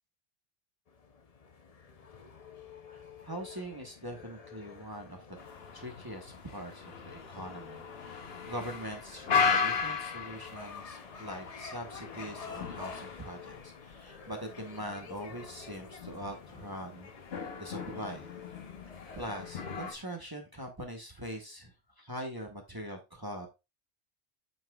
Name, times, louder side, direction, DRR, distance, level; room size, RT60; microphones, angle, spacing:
sound 1, 0.9-20.0, left 6 dB, 40° left, 0.6 m, -49 dB
voice 1, 2.9-5.4 5.7-17.1 17.6-18.3 19.2-23.5, equal, 20° right, 2 dB, 1.1 m, -42 dB
sound 2, 5.4-19.9, left 5 dB, 60° left, 1.2 m, -37 dB
7.9 x 5.8 x 2.3 m, 0.25 s
omnidirectional pair, 1.2 m